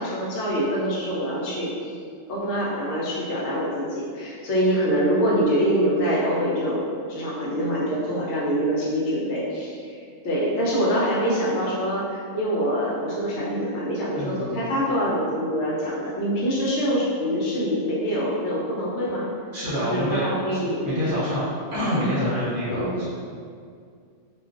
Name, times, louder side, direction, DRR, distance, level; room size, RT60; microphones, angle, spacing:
voice 1, 0.0-1.7 2.3-19.3 19.8-21.3 22.8-23.1, equal, 75° left, -6 dB, 0.9 m, -25 dB
voice 2, 14.1-14.5 19.5-20.2 20.5-23.1, equal, 55° right, -9 dB, 0.7 m, -27 dB
2.3 x 2.2 x 2.4 m, 2.2 s
omnidirectional pair, 1.3 m